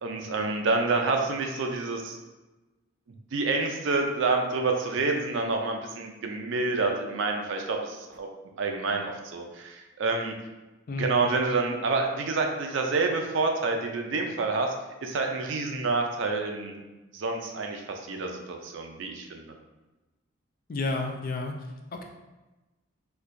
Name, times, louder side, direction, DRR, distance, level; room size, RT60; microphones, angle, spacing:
voice 1, 0.0-2.2 3.3-8.3 8.6-10.3 11.0-14.7 15.0-16.8 17.1-19.5, right 3 dB, 65° right, 3 dB, 0.4 m, -28 dB
voice 2, 10.9-11.2 20.7-21.5 21.9-22.0, left 3 dB, 45° left, 3 dB, 0.4 m, -31 dB
4.3 x 2.3 x 2.5 m, 1.1 s
head